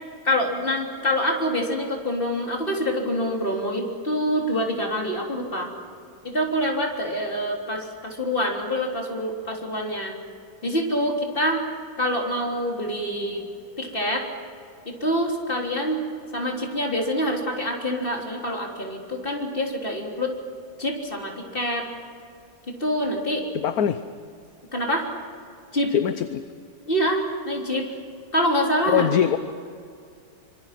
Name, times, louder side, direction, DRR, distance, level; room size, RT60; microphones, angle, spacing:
voice 1, 0.2-5.7 6.2-10.2 10.6-11.6 12.0-13.4 13.8-14.2 14.9-16.0 16.3-20.3 20.8-21.8 22.8-23.4 24.7-25.1 25.7-25.9 26.9-27.9 28.3-29.1, equal, 30° left, 0 dB, 3.7 m, -26 dB
voice 2, 23.5-24.0 25.9-26.4 28.9-29.4, left 9 dB, 60° left, 10 dB, 1.2 m, -22 dB
25.5 x 25.0 x 6.0 m, 2.3 s
omnidirectional pair, 2.0 m